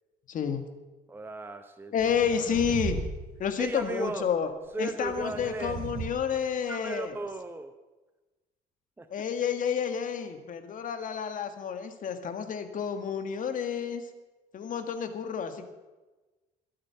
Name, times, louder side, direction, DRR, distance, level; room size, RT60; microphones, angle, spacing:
voice 1, 0.3-0.6 1.9-3.0 3.4-4.5 4.8-7.1 9.1-14.0 14.5-15.7, left 7 dB, 50° left, 8 dB, 1.7 m, -30 dB
voice 2, 1.1-2.1 3.6-4.3 4.7-5.8 6.7-7.7 9.0-9.1, right 2 dB, 10° right, 8 dB, 0.8 m, -35 dB
sound 1, 2.0-3.1 3.4-3.8 5.0-6.1, right 5 dB, 55° right, 6.9 m, -36 dB
21.5 x 8.7 x 5.8 m, 1.2 s
cardioid pair, 110°, 17 cm